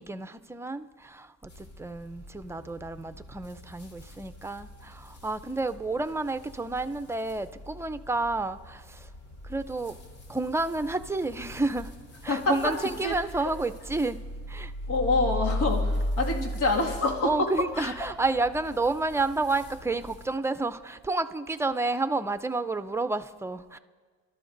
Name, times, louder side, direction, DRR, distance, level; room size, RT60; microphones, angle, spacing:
voice 1, 0.0-9.1 9.4-9.9 10.3-11.9 12.2-14.2 14.5-14.7 17.2-23.8, right 3 dB, 10° right, 11 dB, 0.6 m, -30 dB
sound 1, 1.5-20.3, left 1 dB, 65° left, 4.2 m, -38 dB
voice 2, 12.3-13.5 14.9-17.5 17.7-17.9, left 2 dB, 90° left, -1 dB, 2.2 m, -27 dB
28.0 x 12.5 x 2.7 m, 1.5 s
cardioid pair, 90°, 30 cm